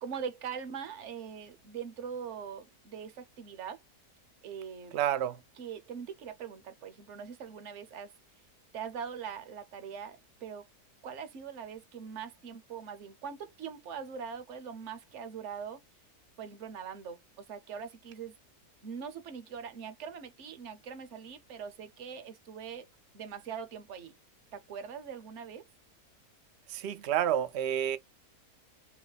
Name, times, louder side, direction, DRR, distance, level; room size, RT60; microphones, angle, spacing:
voice 1, 0.0-3.8 4.4-5.0 5.6-8.1 8.7-10.7 11.0-15.8 16.4-18.4 18.8-22.9 23.1-24.1 24.5-25.6, right 7 dB, 60° right, 0.9 m, -42 dB
voice 2, 4.9-5.4 26.7-28.0, right 10 dB, 80° right, 0.5 m, -29 dB
3.0 x 3.0 x 3.9 m
omnidirectional pair, 1.7 m